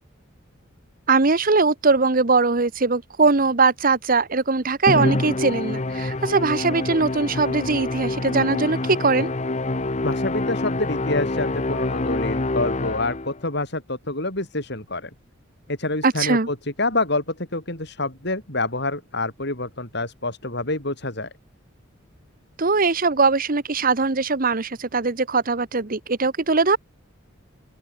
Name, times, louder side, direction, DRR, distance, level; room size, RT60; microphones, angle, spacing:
voice 1, 1.1-9.3 16.0-16.5 22.6-26.8, right 4 dB, 45° right, 1.1 m, -21 dB
Musical instrument, 4.9-13.4, left 2 dB, 35° left, 1.0 m, -26 dB
voice 2, 10.0-15.1 15.7-21.3, left 2 dB, 55° left, 6.6 m, -27 dB
head